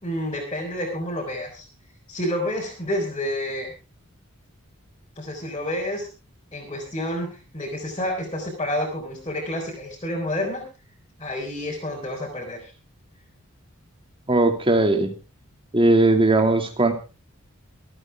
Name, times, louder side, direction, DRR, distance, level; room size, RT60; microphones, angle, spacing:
voice 1, 0.0-1.7 2.1-3.7 5.2-6.1 6.5-10.6 11.2-12.7, left 1 dB, 25° left, -3 dB, 4.4 m, -29 dB
voice 2, 14.3-15.1 15.7-16.9, right 2 dB, 25° right, 5 dB, 2.4 m, -18 dB
26.5 x 9.1 x 3.6 m, 0.32 s
head